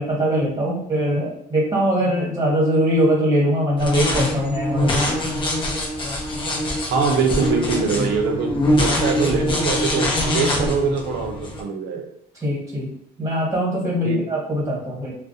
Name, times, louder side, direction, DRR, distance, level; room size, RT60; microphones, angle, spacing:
voice 1, 0.0-5.2 12.4-12.9 13.2-15.1, equal, 20° right, -4 dB, 1.2 m, -22 dB
sound 1, 3.8-11.6, left 1 dB, 30° left, 0.6 m, -23 dB
voice 2, 6.9-12.1 14.0-14.2, right 5 dB, 85° right, 3 dB, 0.5 m, -23 dB
2.3 x 2.0 x 2.6 m, 0.71 s
cardioid pair, 110°, 17 cm